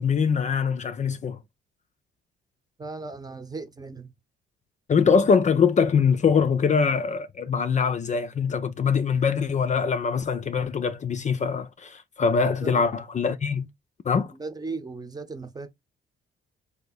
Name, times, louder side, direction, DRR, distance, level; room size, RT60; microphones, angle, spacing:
voice 1, 0.0-1.4 4.9-13.7 14.0-14.3, left 6 dB, 35° left, 0.5 m, -23 dB
voice 2, 2.8-4.1 12.6-12.8 14.2-15.7, right 3 dB, 20° right, 0.9 m, -37 dB
3.4 x 2.8 x 4.1 m
cardioid pair, 90°, 20 cm